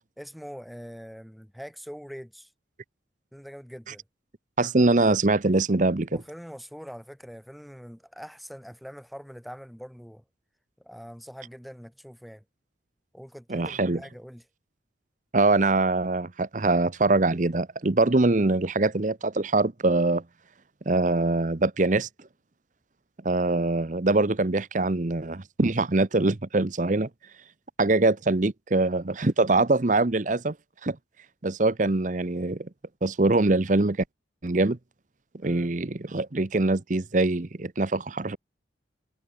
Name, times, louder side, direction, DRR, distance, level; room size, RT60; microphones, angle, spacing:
voice 1, 0.2-2.5 3.3-4.0 6.1-10.2 10.8-12.4 13.1-14.4 35.4-35.8, equal, ahead, 6.0 m, -43 dB
voice 2, 4.6-6.1 13.5-14.0 15.3-20.2 20.9-22.1 23.2-27.1 27.8-30.5 30.8-31.0 31.4-32.7 33.0-34.0 34.4-34.8 35.4-38.4, right 2 dB, 40° right, 0.8 m, -23 dB
head